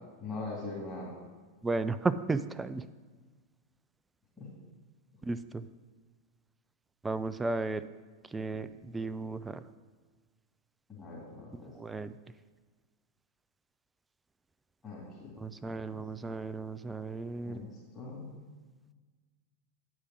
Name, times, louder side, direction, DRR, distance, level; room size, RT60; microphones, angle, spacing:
voice 1, 0.2-1.1 4.4-4.5 10.9-11.7 14.8-15.3 15.6-16.0 17.4-18.3, left 3 dB, 20° left, -5 dB, 2.6 m, -42 dB
voice 2, 1.6-2.9 5.2-5.7 7.0-7.8 8.3-9.6 11.7-12.1 15.4-17.6, right 3 dB, 10° right, 13 dB, 0.3 m, -34 dB
9.4 x 4.9 x 6.2 m, 1.4 s
figure-of-eight pair, 90°, 0 cm